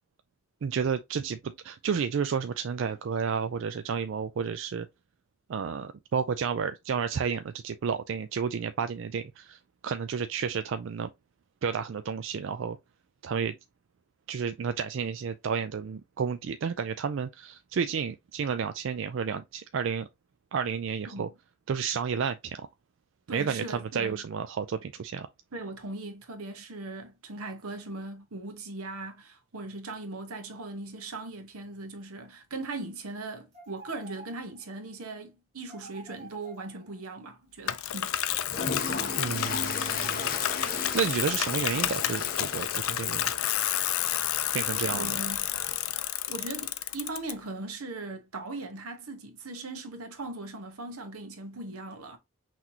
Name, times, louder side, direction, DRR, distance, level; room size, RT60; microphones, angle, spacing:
voice 1, 0.6-4.9 5.5-11.1 11.6-12.8 13.2-13.5 14.3-20.1 20.5-21.3 21.7-22.7 23.3-25.3 39.1-40.2 40.7-43.3 44.5-45.2, right 6 dB, 60° right, 0.3 m, -31 dB
voice 2, 23.3-24.2 25.5-38.1 44.9-45.5 46.3-52.2, right 2 dB, 90° right, 1.1 m, -39 dB
sound 1, 33.5-34.8 35.7-37.2 37.9-39.1 39.8-41.0, right 2 dB, 30° right, 1.6 m, -50 dB
Bicycle, 37.7-47.3, left 12 dB, 75° left, 0.5 m, -30 dB
Toilet flush, 38.5-46.0, left 4 dB, 40° left, 0.9 m, -37 dB
5.8 x 3.1 x 2.7 m
head